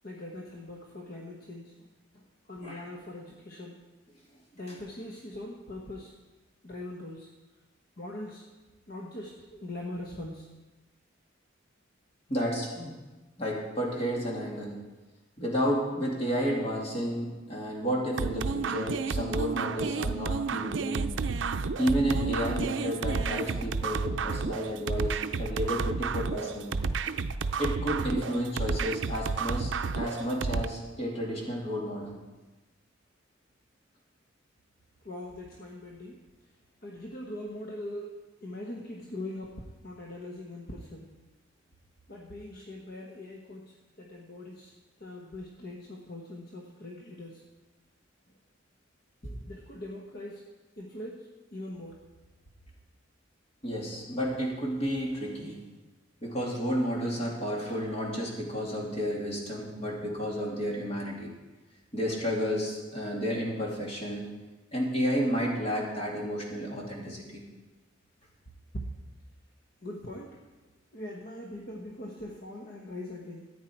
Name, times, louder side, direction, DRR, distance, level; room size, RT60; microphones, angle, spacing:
voice 1, 0.0-3.8 4.5-6.1 6.6-7.3 8.0-8.5 8.9-10.5 35.0-36.2 36.8-41.1 42.1-44.7 45.0-47.4 49.4-50.4 50.8-52.0 68.7-68.8 69.8-70.4 70.9-73.5, left 1 dB, 50° left, -1 dB, 1.3 m, -41 dB
voice 2, 12.3-12.9 13.4-14.8 15.4-21.1 21.8-26.8 27.6-32.2 49.2-49.3 53.6-55.6 56.2-61.3 61.9-64.3 64.7-67.4, equal, 35° left, -2 dB, 2.6 m, -31 dB
sound 1, 18.2-30.7, right 4 dB, 70° right, 0.5 m, -31 dB
14.0 x 9.2 x 4.5 m, 1.2 s
head